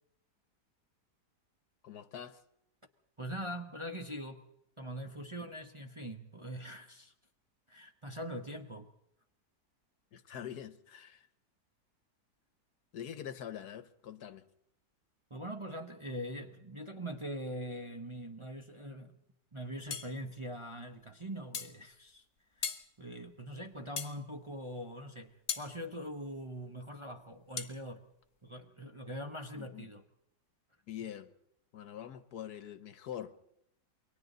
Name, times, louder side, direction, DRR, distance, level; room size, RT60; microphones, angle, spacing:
voice 1, 1.8-2.4 10.1-11.3 12.9-14.4 29.5-29.9 30.9-31.3 31.7-33.3, left 10 dB, 70° left, 1.5 m, -44 dB
voice 2, 3.2-4.5 4.8-7.1 7.7-8.9 15.3-19.2 19.5-22.3 22.6-28.1 28.4-30.0, equal, 20° right, 0.9 m, -42 dB
sound 1, 19.9-20.1 21.5-21.8 22.6-22.9 24.0-24.2 25.5-25.7 27.6-27.8, left 6 dB, 45° left, 1.4 m, -37 dB
28.5 x 23.0 x 4.0 m
omnidirectional pair, 1.8 m